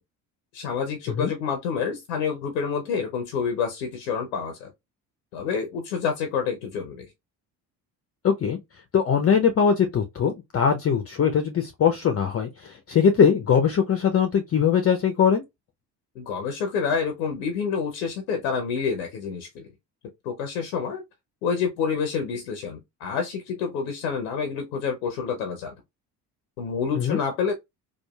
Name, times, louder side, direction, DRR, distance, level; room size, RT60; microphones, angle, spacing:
voice 1, 0.5-4.7 5.3-7.1 16.2-19.7 20.2-21.0 21.4-25.7 26.6-27.5, left 6 dB, 90° left, 0.7 m, -28 dB
voice 2, 8.2-8.6 8.9-15.4 27.0-27.2, left 7 dB, 30° left, 0.5 m, -21 dB
2.9 x 2.3 x 2.2 m
hypercardioid pair, 60°, 49 cm